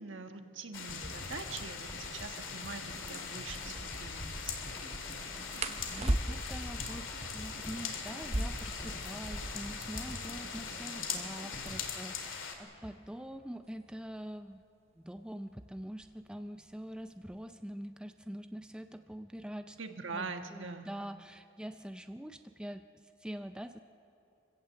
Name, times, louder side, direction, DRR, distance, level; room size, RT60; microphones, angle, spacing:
voice 1, 0.0-4.6 19.8-20.9, right 4 dB, 65° right, 6 dB, 1.5 m, -43 dB
sound 1, 0.7-12.6, left 6 dB, 70° left, 2.4 m, -41 dB
sound 2, 0.7-13.0 13.3-13.4, equal, 15° left, 3.6 m, -47 dB
sound 3, 2.9-3.1 5.6-6.7 8.1-9.8 10.1-10.2 10.4-11.0 11.6-14.2 15.2-15.5 15.9-16.3 16.7-17.4, right 1 dB, 30° right, 0.9 m, -37 dB
voice 2, 5.9-14.6 15.0-19.8 20.1-23.8, equal, 5° right, 8 dB, 0.4 m, -44 dB
25.5 x 16.5 x 7.6 m, 2.7 s
head